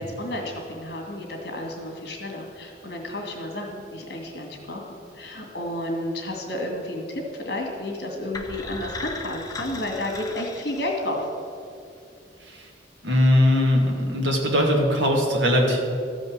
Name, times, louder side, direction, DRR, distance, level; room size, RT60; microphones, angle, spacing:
voice 1, 0.0-11.2, left 1 dB, 55° left, 1 dB, 2.2 m, -31 dB
sound 1, 8.3-11.4, left 3 dB, 20° left, 0.8 m, -37 dB
voice 2, 13.0-15.8, left 1 dB, 85° right, 0 dB, 2.0 m, -20 dB
13.5 x 5.3 x 7.4 m, 2.5 s
head